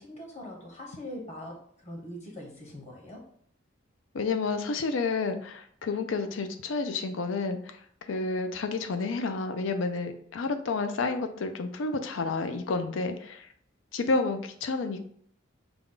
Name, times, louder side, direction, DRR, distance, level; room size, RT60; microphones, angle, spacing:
voice 1, 0.0-3.2, left 1 dB, 35° left, 0 dB, 1.0 m, -42 dB
voice 2, 4.1-7.8 8.1-13.5 13.9-15.0, left 3 dB, 75° left, 7 dB, 0.5 m, -30 dB
5.1 x 2.3 x 3.7 m, 0.62 s
head